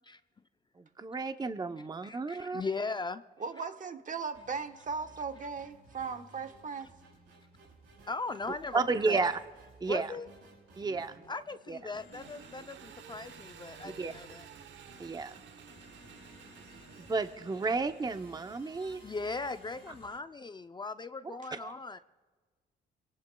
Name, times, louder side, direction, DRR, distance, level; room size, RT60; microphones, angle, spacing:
voice 1, 0.8-2.6 8.7-9.3 9.8-10.1 10.8-11.2 11.7-11.8 13.8-14.1 15.0-15.4 17.0-19.0 21.5-21.7, right 4 dB, 20° right, 9 dB, 0.7 m, -32 dB
voice 2, 2.0-3.2 8.1-9.3 9.9-10.3 11.3-14.5 16.7-17.0 18.8-22.0, left 3 dB, 20° left, 10 dB, 0.4 m, -39 dB
voice 3, 3.4-6.9 10.8-11.0, right 5 dB, 40° right, 8 dB, 1.1 m, -38 dB
sound 1, 4.3-20.1, right 3 dB, 85° right, 5.9 m, -58 dB
sound 2, 11.9-20.2, left 6 dB, 65° left, 2.3 m, -61 dB
Engine, 12.1-18.6, right 7 dB, 65° right, 0.9 m, -52 dB
25.5 x 18.0 x 2.2 m, 1.4 s
cardioid pair, 90°, 20 cm